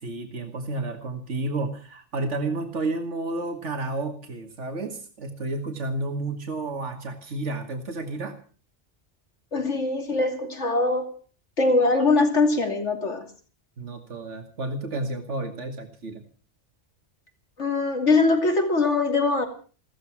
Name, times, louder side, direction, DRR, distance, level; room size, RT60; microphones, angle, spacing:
voice 1, 0.0-8.4 13.8-16.2, right 2 dB, 85° right, 5 dB, 2.2 m, -31 dB
voice 2, 9.5-11.2 11.6-13.2 17.6-19.5, left 3 dB, 85° left, 4 dB, 3.2 m, -22 dB
16.5 x 14.0 x 6.0 m, 0.40 s
omnidirectional pair, 1.2 m